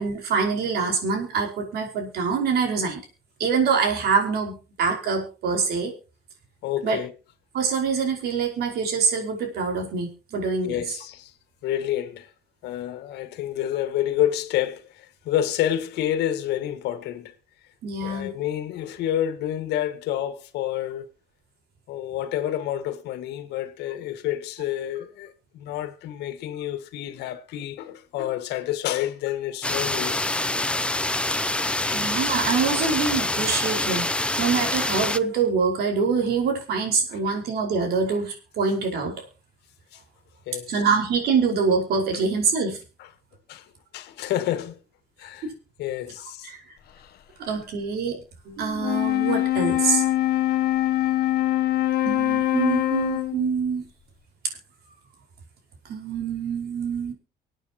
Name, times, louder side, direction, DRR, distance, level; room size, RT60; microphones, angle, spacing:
voice 1, 0.0-3.0 3.4-5.9 6.8-7.0 7.5-10.8 17.8-18.3 31.9-39.2 40.7-42.8 45.4-45.5 46.4-46.6 47.4-48.2 48.4-50.0 52.0-53.9 55.9-57.1, right 5 dB, 70° right, 5.1 m, -25 dB
voice 2, 6.6-7.1 10.6-11.3 11.6-12.3 12.6-17.3 18.0-21.1 21.9-31.2 31.9-32.1 39.9-40.0 40.5-40.7 43.5-43.7 43.9-44.8 45.2-45.5 45.8-46.5, left 12 dB, 80° left, 1.8 m, -29 dB
sound 1, 29.6-35.2, left 2 dB, 5° left, 0.6 m, -26 dB
Wind instrument woodwind instrument, 48.7-53.5, left 14 dB, 65° left, 1.1 m, -23 dB
25.0 x 9.1 x 3.0 m
cardioid pair, 110°, 17 cm